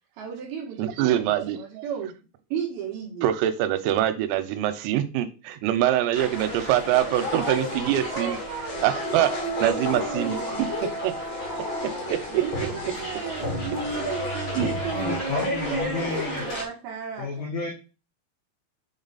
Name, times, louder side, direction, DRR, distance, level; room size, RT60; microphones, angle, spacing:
voice 1, 0.2-2.2 2.5-3.3 4.9-5.0 8.1-10.8 12.3-17.7, right 7 dB, 65° right, 0 dB, 2.5 m, -34 dB
voice 2, 0.8-1.6 3.2-8.4 8.8-9.3 9.6-10.4 11.0-11.1 12.1-12.4 14.6-14.7, right 12 dB, 90° right, 11 dB, 3.4 m, -24 dB
sound 1, 6.1-16.6, left 1 dB, 70° left, 1.2 m, -31 dB
voice 3, 14.9-16.5 17.2-17.7, left 3 dB, 90° left, 0 dB, 2.0 m, -31 dB
7.5 x 3.9 x 4.1 m, 0.32 s
omnidirectional pair, 5.9 m